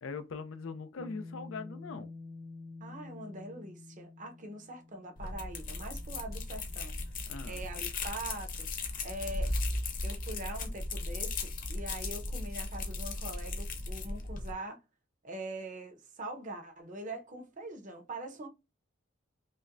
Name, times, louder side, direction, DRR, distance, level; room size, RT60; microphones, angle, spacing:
voice 1, 0.0-2.1 7.3-7.6, left 4 dB, 90° left, 0.5 m, -41 dB
sound 1, 1.0-7.7, left 3 dB, 10° right, 0.4 m, -50 dB
voice 2, 2.8-9.5 10.0-14.8 15.2-18.5, right 2 dB, 40° right, 0.8 m, -43 dB
sound 2, 5.2-14.5, left 2 dB, 45° left, 0.9 m, -36 dB
5.5 x 2.1 x 2.5 m
head